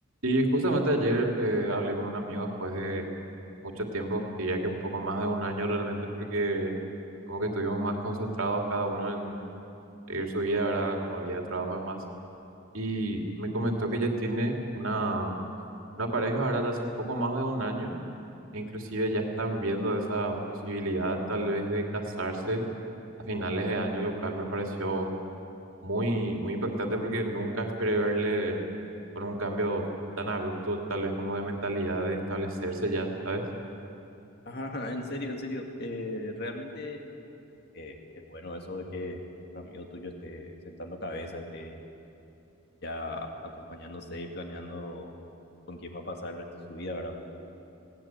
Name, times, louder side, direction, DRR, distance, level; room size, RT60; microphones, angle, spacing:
voice 1, 0.2-3.0 3.6-6.7 7.3-9.4 10.1-12.0 12.7-15.3 16.0-17.9 18.5-20.3 20.6-22.6 23.3-25.1 25.8-28.6 29.1-29.8 30.2-33.4, right 1 dB, 70° right, 1 dB, 2.8 m, -29 dB
voice 2, 34.5-37.0 37.7-39.2 39.5-41.9 42.8-45.1 45.7-47.2, left 1 dB, 50° left, 2 dB, 2.4 m, -38 dB
19.5 x 18.0 x 9.1 m, 2.8 s
head